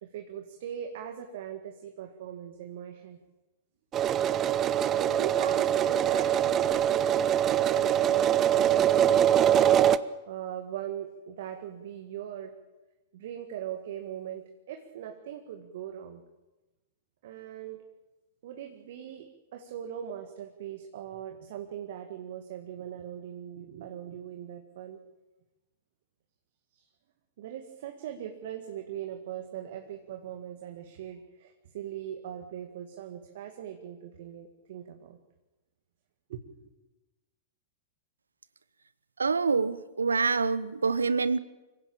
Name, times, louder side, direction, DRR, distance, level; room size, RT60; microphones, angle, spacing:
voice 1, 0.0-3.2 4.9-9.3 10.3-12.6 13.1-16.2 17.2-17.9 18.4-25.0 26.7-26.9 27.4-35.2 36.3-36.5, right 10 dB, 55° right, 5 dB, 1.9 m, -40 dB
sound 1, 3.9-10.0, right 10 dB, 30° right, 0.8 m, -23 dB
voice 2, 39.2-41.4, right 4 dB, 80° right, 18 dB, 1.0 m, -26 dB
25.0 x 16.5 x 8.7 m, 1.1 s
figure-of-eight pair, 105°, 0 cm